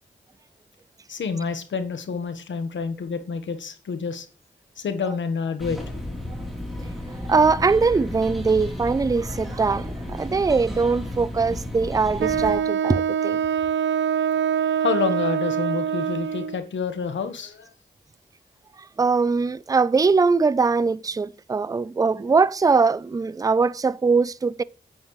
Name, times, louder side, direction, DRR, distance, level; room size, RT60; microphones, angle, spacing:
voice 1, 1.1-4.3 4.8-5.8 14.8-17.7, left 5 dB, 90° left, 1.2 m, -28 dB
sound 1, 5.6-12.6, left 1 dB, ahead, 3.3 m, -33 dB
voice 2, 7.1-13.4 19.0-24.6, right 4 dB, 20° right, 0.4 m, -21 dB
Wind instrument woodwind instrument, 12.2-16.6, right 8 dB, 80° right, 0.4 m, -24 dB
9.1 x 8.9 x 3.1 m
cardioid pair, 55°, 19 cm